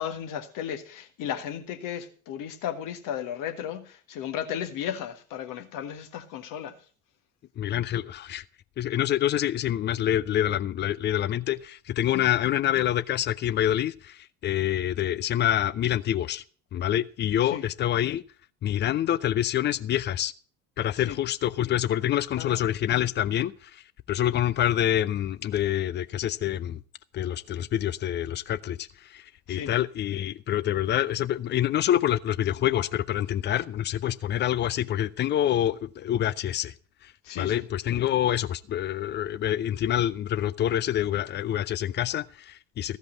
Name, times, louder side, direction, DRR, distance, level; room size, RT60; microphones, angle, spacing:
voice 1, 0.0-6.7 12.1-12.2 17.5-17.6 21.0-21.2 22.4-22.7 29.5-29.7 37.2-37.6, left 9 dB, 45° left, 1.6 m, -34 dB
voice 2, 7.6-8.4 8.8-16.4 16.7-18.2 18.6-20.3 20.8-23.8 24.1-26.8 27.1-36.7 37.0-43.0, left 11 dB, 25° left, 0.5 m, -26 dB
15.0 x 5.4 x 7.6 m
figure-of-eight pair, 60°, 43 cm